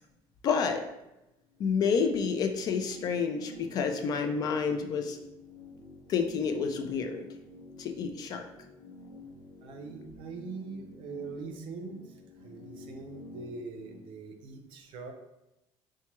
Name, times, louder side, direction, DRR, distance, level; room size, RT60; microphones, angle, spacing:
voice 1, 0.4-0.8 1.6-5.2 6.1-7.2 7.8-8.5, left 6 dB, 45° left, 5 dB, 0.4 m, -29 dB
sound 1, 1.5-14.0, left 2 dB, 90° left, 1.2 m, -50 dB
voice 2, 9.6-12.0 12.4-15.1, right 4 dB, 65° right, 5 dB, 0.5 m, -42 dB
4.5 x 2.2 x 2.9 m, 0.92 s
cardioid pair, 160°, 9 cm